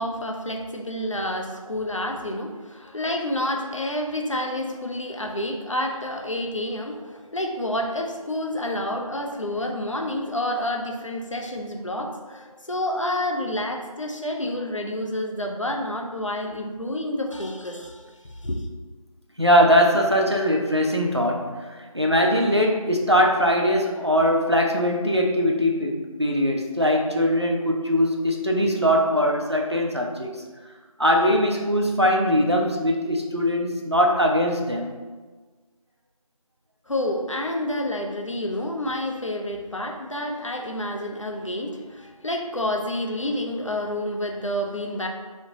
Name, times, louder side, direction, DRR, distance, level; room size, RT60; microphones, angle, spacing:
voice 1, 0.0-18.7 36.9-45.1, left 1 dB, 60° left, 2 dB, 0.4 m, -29 dB
voice 2, 19.4-30.3 31.0-34.9, equal, 50° right, 1 dB, 0.4 m, -21 dB
3.1 x 2.0 x 3.7 m, 1.3 s
figure-of-eight pair, 180°, 18 cm